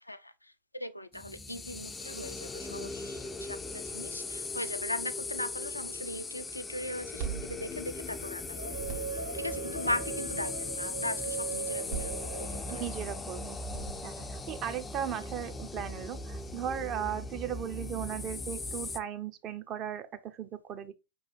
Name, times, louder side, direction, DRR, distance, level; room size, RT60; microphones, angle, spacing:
voice 1, 0.0-9.1 9.3-12.8, left 1 dB, 85° left, 0.3 m, -39 dB
sound 1, 1.1-19.0, left 3 dB, 15° left, 0.4 m, -39 dB
sound 2, 6.9-8.4 8.7-9.4 11.6-12.8 13.6-14.4, right 7 dB, 60° right, 0.9 m, -41 dB
sound 3, 8.6-13.0, right 6 dB, 75° right, 0.6 m, -39 dB
voice 2, 12.7-13.6 14.0-20.9, right 9 dB, 35° right, 0.6 m, -37 dB
5.3 x 3.1 x 3.1 m
figure-of-eight pair, 90°, 0 cm